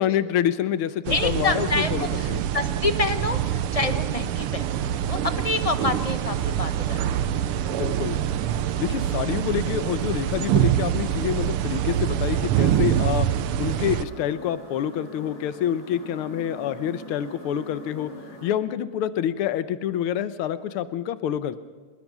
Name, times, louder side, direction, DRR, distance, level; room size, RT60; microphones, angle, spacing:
voice 1, 0.0-2.4 7.8-8.2 8.8-13.3 13.6-18.1 18.4-21.6, left 10 dB, 80° left, 13 dB, 1.8 m, -27 dB
voice 2, 1.1-2.3 2.5-4.8 5.0-7.3, left 3 dB, 20° left, 9 dB, 0.9 m, -27 dB
sound 1, 1.1-14.1, right 11 dB, 85° right, 1.7 m, -25 dB
sound 2, 4.7-18.5, equal, 55° left, 5.6 m, -43 dB
26.0 x 21.5 x 6.0 m, 1.5 s
omnidirectional pair, 2.4 m